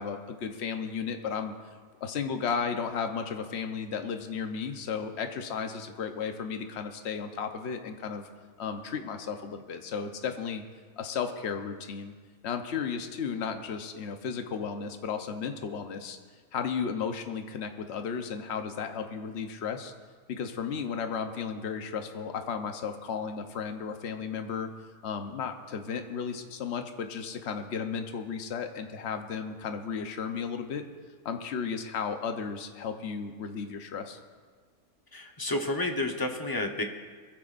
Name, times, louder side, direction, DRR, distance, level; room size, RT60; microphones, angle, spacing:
voice 1, 0.0-1.5 2.0-8.2 8.6-10.6 11.0-12.1 12.4-16.2 16.5-19.9 20.3-24.7 25.0-30.8 31.2-34.2, left 6 dB, 50° left, 6 dB, 1.1 m, -34 dB
voice 2, 35.1-36.8, left 1 dB, 15° left, 3 dB, 0.9 m, -30 dB
23.0 x 15.0 x 2.6 m, 1.5 s
omnidirectional pair, 1.6 m